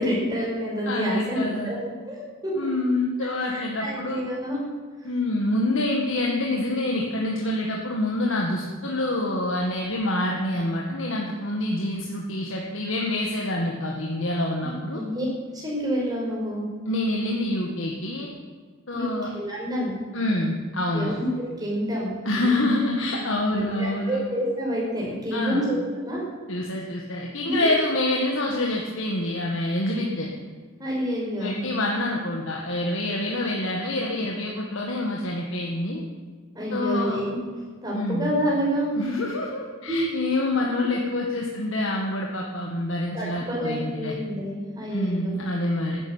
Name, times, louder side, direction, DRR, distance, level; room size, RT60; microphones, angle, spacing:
voice 1, 0.0-1.8 2.1-2.5 3.5-4.6 6.9-7.0 14.9-15.3 15.5-16.7 18.9-19.9 20.9-22.6 23.5-26.2 27.4-27.8 30.8-31.6 36.5-37.4 37.8-38.9 39.9-40.0 43.1-45.3, equal, 20° right, -4 dB, 5.5 m, -28 dB
voice 2, 0.8-1.7 2.6-4.2 5.0-15.0 16.9-18.3 18.9-19.3 20.1-21.2 22.3-24.2 25.3-25.7 26.5-30.3 31.4-36.0 36.7-37.2 37.9-38.3 39.0-44.1 44.9-46.0, left 1 dB, 65° left, -1 dB, 1.9 m, -26 dB
13.0 x 10.5 x 9.6 m, 1.5 s
head